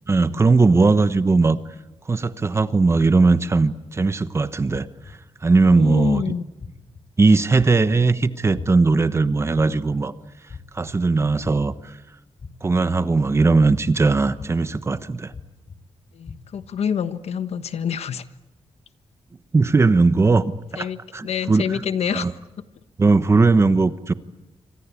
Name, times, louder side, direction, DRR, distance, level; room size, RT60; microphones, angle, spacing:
voice 1, 0.1-1.6 2.1-4.9 5.4-6.3 7.2-10.1 10.7-12.0 12.6-15.3 19.5-20.9 21.1-21.8 22.1-22.3 23.0-24.1, right 3 dB, 25° right, 13 dB, 1.0 m, -18 dB
sound 1, 4.0-4.1 4.7-5.1 5.7-6.1 6.6-7.0 7.6-8.0 8.5-9.0 9.5-10.0 10.5-10.9 11.4-11.8 12.4-12.8 13.4-13.8 14.4-14.8 15.3-15.8 16.3-16.7, left 5 dB, 45° left, 4.4 m, -38 dB
voice 2, 5.7-6.4 16.1-18.2 20.8-22.3, left 7 dB, 85° left, 12 dB, 1.2 m, -27 dB
28.0 x 25.0 x 8.4 m, 1.0 s
wide cardioid pair, 165°, 10 cm